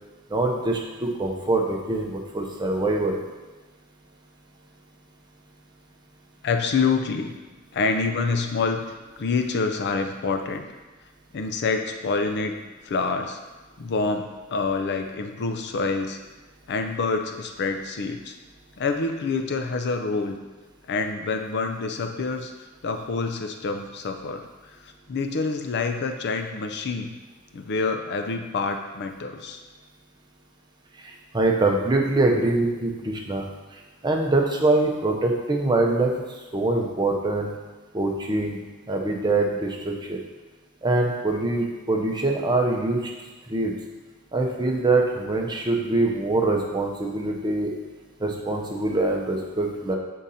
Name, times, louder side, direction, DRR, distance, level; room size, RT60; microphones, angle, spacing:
voice 1, 0.3-3.2 31.0-33.5 34.0-36.2 36.5-37.5 37.9-38.6 38.9-40.2 40.8-43.1 43.5-43.7 44.3-47.8 48.2-50.0, right 2 dB, 20° right, 0 dB, 0.7 m, -24 dB
voice 2, 6.4-7.3 7.7-8.8 9.2-10.7 11.3-12.5 12.8-13.4 13.8-16.2 16.7-18.4 18.8-20.4 20.9-22.5 22.8-24.4 24.8-27.1 27.5-29.6, left 4 dB, 50° left, 5 dB, 0.5 m, -27 dB
7.0 x 3.8 x 4.1 m, 1.2 s
head